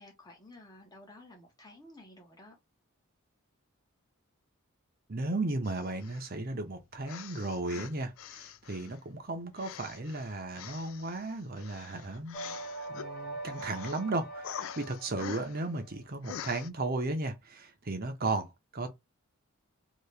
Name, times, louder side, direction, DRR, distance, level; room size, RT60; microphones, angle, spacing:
voice 1, 0.0-2.6, left 1 dB, 15° left, 0.9 m, -53 dB
voice 2, 5.1-12.6 12.9-18.9, right 2 dB, 40° right, 0.7 m, -35 dB
sound 1, 5.6-6.3 7.1-9.0 9.6-13.1 13.4-14.0 14.4-15.7 16.2-16.7, left 9 dB, 65° left, 0.4 m, -45 dB
sound 2, 12.3-16.0, right 2 dB, 40° left, 1.3 m, -43 dB
2.9 x 2.8 x 3.3 m
head